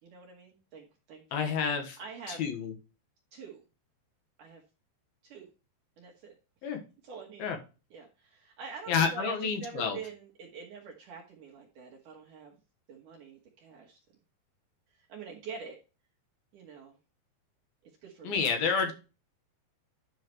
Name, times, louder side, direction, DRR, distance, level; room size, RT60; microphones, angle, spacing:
voice 1, 0.0-1.5 2.0-2.4 3.3-3.6 4.4-4.6 5.2-5.5 6.0-6.4 7.0-7.5 7.9-12.6 12.9-14.0 14.9-15.8 16.5-17.0 17.8-18.9, right 5 dB, 65° right, -1 dB, 2.4 m, -46 dB
voice 2, 1.3-2.0 2.3-2.7 6.6-6.8 7.4-7.6 8.9-10.0 18.2-18.9, left 6 dB, 70° left, 5 dB, 3.1 m, -29 dB
10.5 x 5.7 x 3.1 m, 0.32 s
omnidirectional pair, 4.6 m